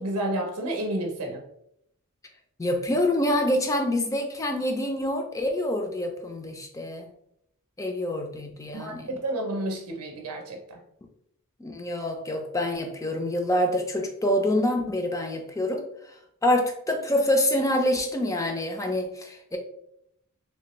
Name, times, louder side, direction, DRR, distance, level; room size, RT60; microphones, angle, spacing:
voice 1, 0.0-1.4 8.7-10.8, right 1 dB, 85° right, 3 dB, 0.6 m, -30 dB
voice 2, 2.6-7.1 7.8-9.1 11.6-15.8 16.4-19.6, left 1 dB, 15° left, 3 dB, 0.4 m, -26 dB
3.3 x 2.8 x 3.0 m, 0.74 s
head